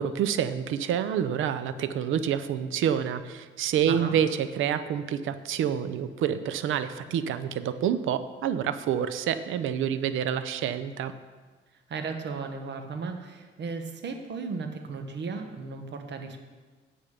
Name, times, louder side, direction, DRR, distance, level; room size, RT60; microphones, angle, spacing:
voice 1, 0.0-11.1, right 9 dB, 80° right, 12 dB, 0.7 m, -28 dB
voice 2, 3.9-4.2 11.9-16.4, right 4 dB, 60° right, 6 dB, 1.4 m, -35 dB
9.2 x 8.9 x 5.0 m, 1.4 s
cardioid pair, 90°, 20 cm